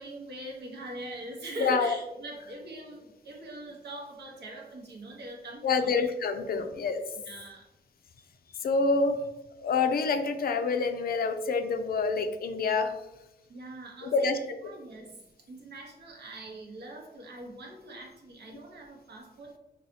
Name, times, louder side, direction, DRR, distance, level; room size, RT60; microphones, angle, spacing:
voice 1, 0.0-6.1 6.5-6.7 7.3-7.6 13.5-14.3 14.6-19.6, right 1 dB, 70° right, 0 dB, 0.9 m, -42 dB
voice 2, 1.6-2.0 5.6-7.0 8.6-9.2 9.6-12.9 14.0-14.4, left 4 dB, 60° left, 7 dB, 0.4 m, -27 dB
4.0 x 2.3 x 2.6 m, 0.96 s
cardioid pair, 90°, 18 cm